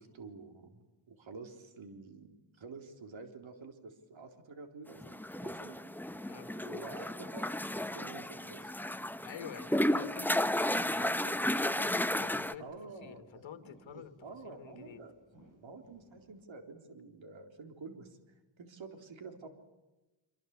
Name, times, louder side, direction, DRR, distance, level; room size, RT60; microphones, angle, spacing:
voice 1, 0.0-5.8 6.5-8.7 9.9-10.2 10.6-10.7 12.6-13.4 13.9-15.1 15.6-18.2 18.6-19.5, right 4 dB, 85° right, 6 dB, 3.9 m, -49 dB
Sea waves in a cave, 5.0-12.5, left 1 dB, 5° left, 0.9 m, -33 dB
voice 2, 9.2-12.7 13.0-14.1 14.4-15.0, left 8 dB, 80° left, 10 dB, 1.9 m, -48 dB
sound 1, 11.5-16.4, equal, 45° right, 8.0 m, -62 dB
26.0 x 25.5 x 8.4 m, 1.1 s
wide cardioid pair, 105°, 46 cm